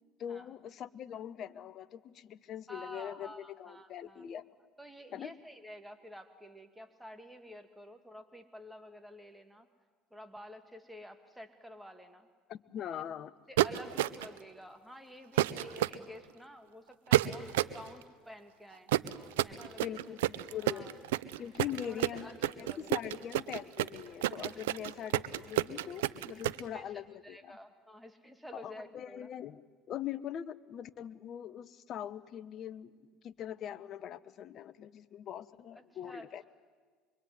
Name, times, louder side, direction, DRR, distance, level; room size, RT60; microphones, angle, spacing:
voice 1, 0.2-4.4 5.1-5.3 12.5-13.3 19.5-20.9 21.4-27.6 28.5-29.6 29.9-32.9 33.2-36.4, left 10 dB, 50° left, 14 dB, 1.1 m, -42 dB
voice 2, 2.7-4.3 4.8-9.7 10.1-12.3 12.9-13.0 13.5-18.9 19.4-20.1 20.6-21.0 21.8-23.1 26.7-26.9 27.2-29.3 35.8-36.5, equal, ahead, 6 dB, 2.4 m, -50 dB
sound 1, 13.6-14.4 15.4-16.0 17.1-17.8 18.9-26.6, right 15 dB, 85° right, 0.7 m, -29 dB
24.5 x 23.5 x 9.6 m, 1.5 s
hypercardioid pair, 80°, 0 cm